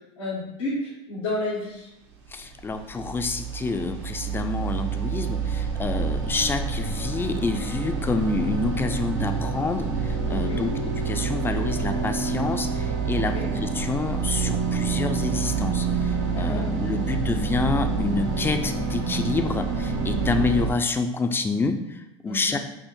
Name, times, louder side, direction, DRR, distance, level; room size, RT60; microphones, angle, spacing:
voice 1, 0.2-1.9 10.3-10.6 13.1-13.5 16.3-16.7 22.3-22.6, left 2 dB, 90° left, -8 dB, 0.9 m, -31 dB
voice 2, 2.3-10.7 11.0-22.6, left 3 dB, 15° left, 7 dB, 0.4 m, -28 dB
sound 1, 2.3-20.7, right 5 dB, 80° right, 0.7 m, -27 dB
5.5 x 2.1 x 3.0 m, 0.87 s
hypercardioid pair, 85°, 15 cm